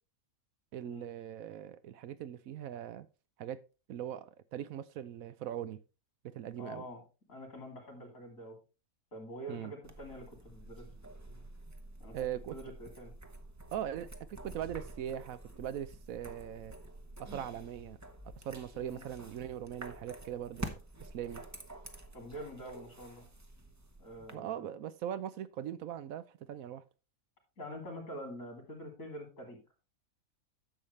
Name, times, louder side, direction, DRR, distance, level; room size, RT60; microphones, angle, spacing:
voice 1, 0.7-3.1 3.4-3.6 3.9-5.8 6.2-6.8 9.5-9.7 12.1-12.6 13.7-16.8 17.2-18.0 18.4-21.4 24.3-26.8, right 10 dB, 75° right, 14 dB, 1.0 m, -40 dB
voice 2, 6.6-7.0 7.3-8.6 9.1-10.8 12.0-12.1 12.5-13.1 18.7-19.0 22.1-23.3 24.0-24.7 27.6-29.6, equal, 60° left, 2 dB, 3.4 m, -46 dB
sound 1, 9.8-24.3, right 2 dB, 15° right, 0.6 m, -48 dB
10.5 x 7.3 x 3.2 m, 0.32 s
omnidirectional pair, 1.6 m